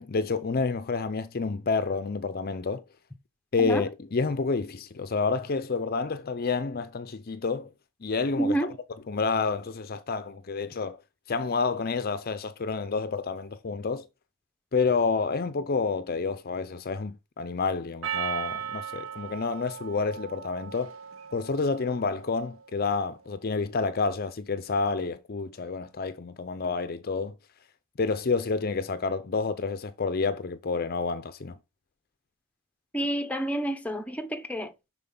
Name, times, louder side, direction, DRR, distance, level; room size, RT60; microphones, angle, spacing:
voice 1, 0.0-2.8 3.5-7.7 8.0-8.6 9.1-11.0 11.3-14.1 14.7-21.0 21.3-27.4 28.0-31.6, left 4 dB, 40° left, 0.5 m, -29 dB
voice 2, 8.4-8.8 32.9-34.9, right 1 dB, 5° left, 0.7 m, -29 dB
Percussion, 18.0-22.6, right 8 dB, 65° right, 0.8 m, -37 dB
11.5 x 4.3 x 3.8 m
head